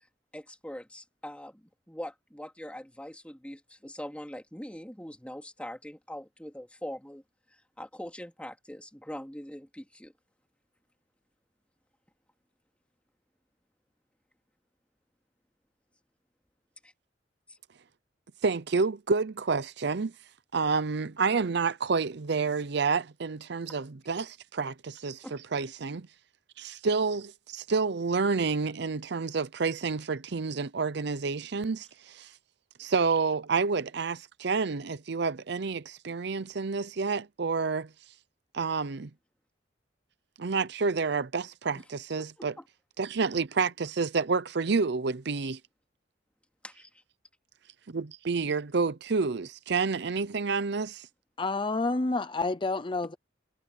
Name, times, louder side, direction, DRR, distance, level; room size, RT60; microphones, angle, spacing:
voice 1, 0.3-7.2 7.5-10.1 16.8-16.9 17.5-17.6 24.1-24.2 25.2-25.4 41.7-41.9 42.2-42.6 46.6-47.0, left 1 dB, 5° left, 3.0 m, -43 dB
voice 2, 18.4-20.1 20.5-26.1 26.6-32.3 32.8-37.9 38.5-39.1 40.4-42.5 43.0-45.6 47.9-51.1, right 4 dB, 65° right, 0.7 m, -29 dB
voice 3, 51.4-53.1, left 3 dB, 25° left, 0.7 m, -29 dB
head